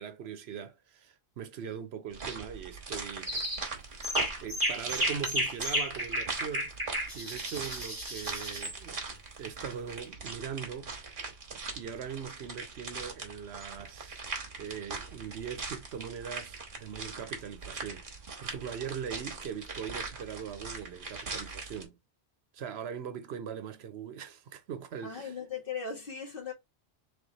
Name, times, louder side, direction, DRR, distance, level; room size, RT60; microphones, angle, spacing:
voice 1, 0.0-3.3 4.4-6.7 7.1-9.0 9.4-10.9 11.7-14.2 14.6-18.1 18.4-22.0 22.5-25.3, right 7 dB, 75° right, 0.9 m, -40 dB
sound 1, 2.1-21.8, right 4 dB, 55° right, 1.3 m, -41 dB
sound 2, 3.3-3.6 4.0-8.8, equal, 20° right, 1.6 m, -33 dB
voice 2, 25.0-26.5, left 6 dB, 55° left, 2.0 m, -38 dB
3.4 x 3.4 x 3.9 m
omnidirectional pair, 1.1 m